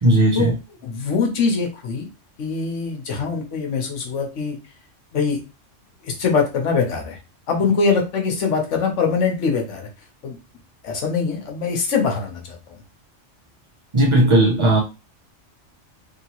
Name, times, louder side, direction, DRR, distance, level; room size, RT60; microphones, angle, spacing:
voice 1, 0.0-0.5 13.9-14.8, right 1 dB, 45° right, 0.4 m, -16 dB
voice 2, 0.8-2.0 2.4-4.6 5.1-5.4 6.0-7.2 7.5-9.9 10.2-10.4 10.8-12.8, left 5 dB, 75° left, 1.2 m, -23 dB
3.3 x 2.8 x 2.9 m
omnidirectional pair, 1.3 m